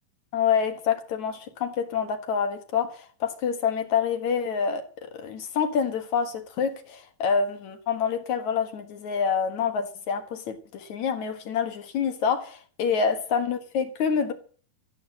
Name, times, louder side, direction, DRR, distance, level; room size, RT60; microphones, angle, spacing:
voice 1, 0.3-14.3, left 6 dB, 60° left, 2.6 m, -27 dB
14.5 x 8.4 x 7.3 m
omnidirectional pair, 4.1 m